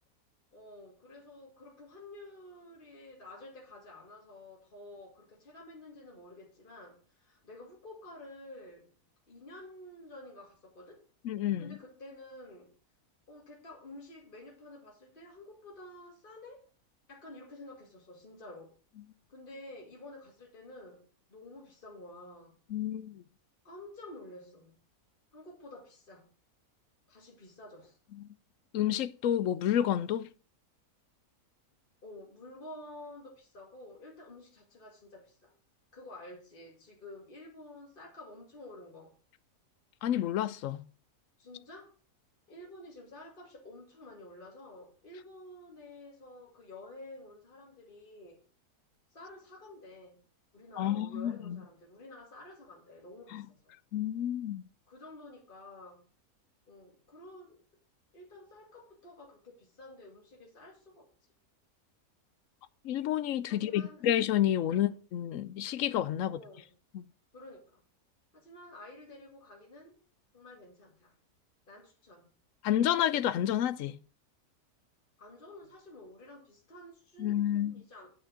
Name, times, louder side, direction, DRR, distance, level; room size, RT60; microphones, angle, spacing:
voice 1, 0.5-8.9 9.3-11.0 11.6-12.7 13.3-16.6 17.1-18.7 19.3-22.6 23.6-24.8 25.3-26.3 27.1-28.0 32.0-35.5 35.9-39.1 41.4-41.9 42.5-48.4 49.1-50.2 50.5-53.7 54.9-56.0 56.7-57.6 58.1-61.1 63.5-64.0 64.7-64.9 66.2-66.7 67.3-67.8 68.3-69.9 70.3-71.1 71.7-72.3 75.2-78.1, left 1 dB, 35° left, 2.4 m, -50 dB
voice 2, 11.2-11.8 22.7-23.2 28.1-28.3 28.7-30.3 40.0-40.8 50.8-51.6 53.3-53.5 53.9-54.6 62.8-66.4 66.9-67.0 72.6-74.0 77.2-77.8, left 11 dB, 70° left, 0.9 m, -30 dB
8.5 x 6.2 x 6.1 m
omnidirectional pair, 1.6 m